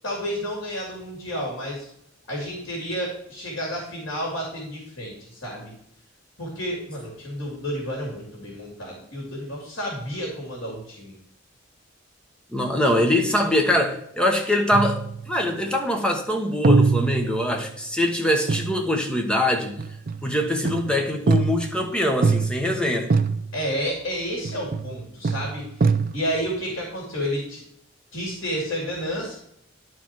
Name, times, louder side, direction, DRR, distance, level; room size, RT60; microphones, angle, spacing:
voice 1, 0.0-1.9 2.3-5.7 6.4-11.1 23.5-25.7 26.1-27.6 28.1-29.4, equal, 70° left, 2.9 m, -30 dB
voice 2, 12.5-19.8 20.2-23.1, left 1 dB, 5° left, 1.1 m, -23 dB
sound 1, 14.7-15.6 16.6-17.8 18.5-18.8 19.8-20.3 20.6-21.8 22.2-22.8 23.1-23.7 24.4-25.0 25.2-26.4, right 4 dB, 45° right, 0.5 m, -23 dB
11.0 x 4.7 x 4.5 m
head